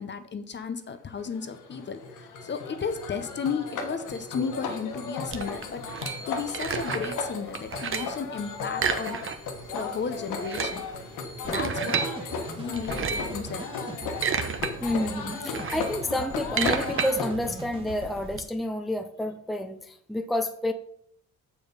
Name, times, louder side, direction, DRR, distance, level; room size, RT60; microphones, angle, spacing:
voice 1, 0.0-5.8 6.3-9.2 9.7-10.8 11.4-12.0 12.5-13.7, left 6 dB, 35° left, 10 dB, 0.8 m, -34 dB
sound 1, 1.2-17.3, left 4 dB, 85° left, 1.2 m, -36 dB
sound 2, 5.3-7.2 7.5-8.2 8.7-9.6 9.9-10.0 10.3-12.1 12.7-13.4 13.9-14.7 15.1-18.4, right 6 dB, 45° right, 0.9 m, -31 dB
sound 3, 11.4-18.3, right 2 dB, 15° right, 1.4 m, -40 dB
voice 2, 14.8-20.7, left 1 dB, ahead, 7 dB, 0.6 m, -29 dB
7.0 x 4.9 x 5.2 m, 0.65 s
cardioid pair, 90°, 30 cm